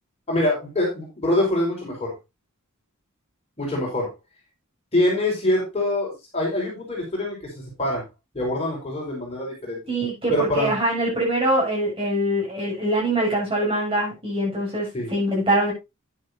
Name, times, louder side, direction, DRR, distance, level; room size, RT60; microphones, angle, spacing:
voice 1, 0.3-2.1 3.6-4.1 4.9-8.1 8.3-9.8 10.3-10.7 14.9-15.1, left 1 dB, 30° left, -2 dB, 4.8 m, -24 dB
voice 2, 9.9-15.7, right 1 dB, 25° right, -3 dB, 7.6 m, -23 dB
10.5 x 10.5 x 2.7 m, 0.23 s
head